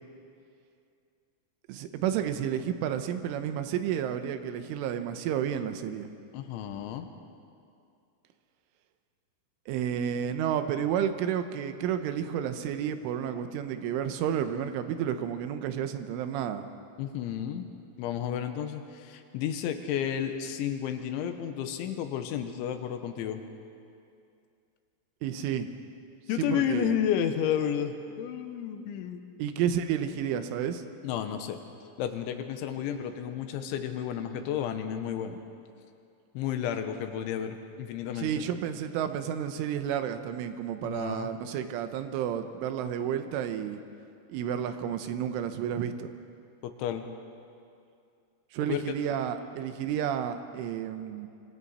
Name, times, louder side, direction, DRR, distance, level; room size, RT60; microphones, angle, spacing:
voice 1, 1.7-6.1 9.7-16.7 25.2-25.7 26.4-27.0 29.4-30.8 38.2-43.8 44.3-46.1 48.5-51.3, right 9 dB, 80° right, 9 dB, 3.4 m, -31 dB
voice 2, 6.3-7.1 17.0-17.7 18.0-23.4 26.3-29.2 31.0-31.6 32.0-35.4 36.4-38.3 40.8-41.3 46.6-47.1 48.7-49.0, left 9 dB, 80° left, 7 dB, 3.4 m, -32 dB
25.5 x 25.0 x 4.3 m, 2.5 s
omnidirectional pair, 5.6 m